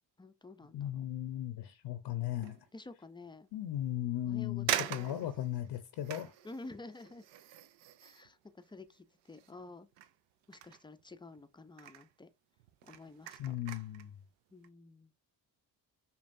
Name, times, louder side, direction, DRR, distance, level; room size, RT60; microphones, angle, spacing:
voice 1, 0.2-1.1 2.7-3.5 4.2-5.3 6.4-7.3 8.0-9.9 10.5-12.3 12.8-13.5 14.5-15.1, left 3 dB, 10° left, 0.4 m, -50 dB
voice 2, 0.7-2.6 3.5-6.3 13.4-14.1, left 12 dB, 65° left, 0.7 m, -37 dB
sound 1, 2.3-2.7 3.2-3.3 4.1-4.2 4.7-9.7 9.9-11.4 11.7-12.1 12.6-14.1 14.5-14.7, right 12 dB, 80° right, 0.6 m, -42 dB
5.4 x 2.3 x 2.6 m
cardioid pair, 80°, 43 cm